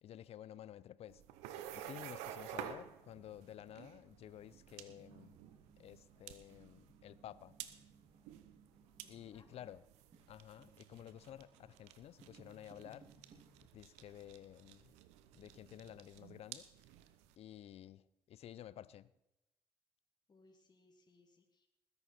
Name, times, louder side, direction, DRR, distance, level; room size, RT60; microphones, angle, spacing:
voice 1, 0.0-1.2 1.7-5.4 5.8-7.6 9.1-9.8 10.3-13.1 13.7-14.9 15.3-16.7 17.4-19.1, left 11 dB, 65° left, 18 dB, 0.7 m, -53 dB
sound 1, 1.1-17.3, right 11 dB, 80° right, 0.8 m, -52 dB
sound 2, 1.7-13.4, right 4 dB, 50° right, 2.8 m, -65 dB
voice 2, 9.0-9.7 20.3-21.7, left 3 dB, 40° left, 2 dB, 2.6 m, -68 dB
19.5 x 10.5 x 4.4 m, 0.91 s
hypercardioid pair, 45°, 11 cm